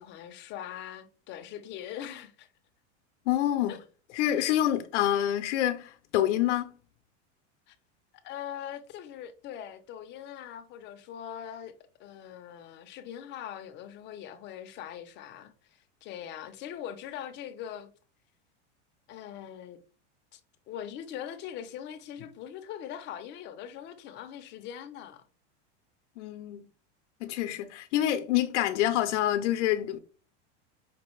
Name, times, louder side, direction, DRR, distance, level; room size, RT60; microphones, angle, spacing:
voice 1, 0.0-2.5 3.7-3.8 7.7-7.8 8.2-11.7 12.0-17.9 19.1-19.8 20.3-20.4 20.7-25.2, left 10 dB, 30° left, 0.6 m, -41 dB
voice 2, 3.3-3.8 4.1-6.7 26.2-26.7 27.2-30.0, left 12 dB, 75° left, 0.6 m, -27 dB
5.2 x 2.7 x 3.1 m
supercardioid pair, 145°, 35 cm